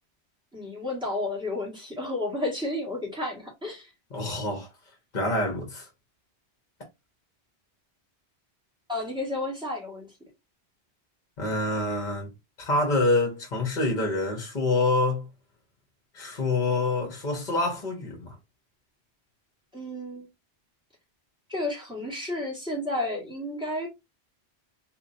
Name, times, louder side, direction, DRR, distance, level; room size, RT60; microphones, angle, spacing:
voice 1, 0.5-3.9 8.9-10.1 19.7-20.3 21.5-23.9, left 2 dB, 5° right, 1.6 m, -32 dB
voice 2, 4.1-4.7 5.1-5.9 11.4-12.3 12.6-15.2 16.1-18.3, left 2 dB, 45° left, 1.1 m, -26 dB
3.8 x 2.8 x 2.6 m
omnidirectional pair, 1.1 m